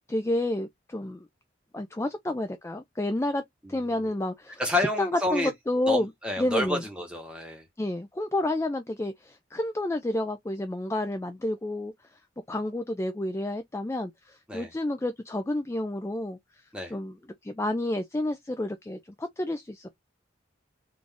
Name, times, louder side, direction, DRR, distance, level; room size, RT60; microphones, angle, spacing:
voice 1, 0.1-1.2 1.7-3.4 3.7-4.6 5.0-6.1 6.4-6.8 7.8-11.9 12.5-16.4 16.9-17.1 17.4-19.9, left 1 dB, 15° left, 0.3 m, -30 dB
voice 2, 3.6-4.1 4.6-5.5 5.9-7.6 14.5-14.7 16.7-16.9, left 1 dB, 5° right, 1.1 m, -30 dB
3.8 x 2.5 x 3.4 m
head